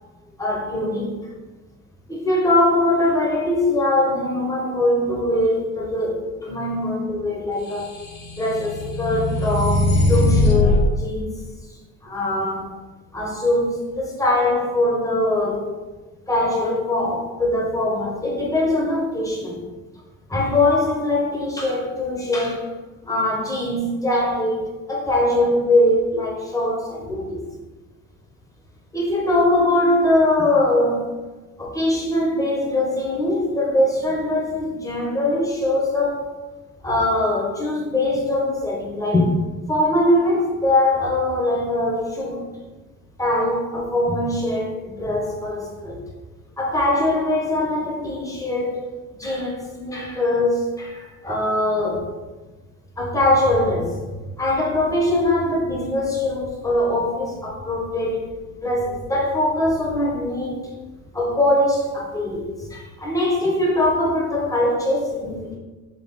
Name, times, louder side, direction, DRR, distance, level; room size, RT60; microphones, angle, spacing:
voice 1, 0.4-1.2 2.1-7.9 8.4-11.3 11.7-12.7 13.1-15.7 16.3-19.6 20.3-22.8 23.0-27.4 28.9-31.1 31.6-36.4 36.8-39.4 39.7-42.4 43.2-46.0 46.6-52.1 53.0-54.1 54.4-58.3 58.6-60.7 61.1-65.6, left 1 dB, 10° left, 1.0 m, -22 dB
sound 1, 7.9-10.8, left 2 dB, 50° left, 1.3 m, -20 dB
3.7 x 2.6 x 4.0 m
cardioid pair, 105°, 30 cm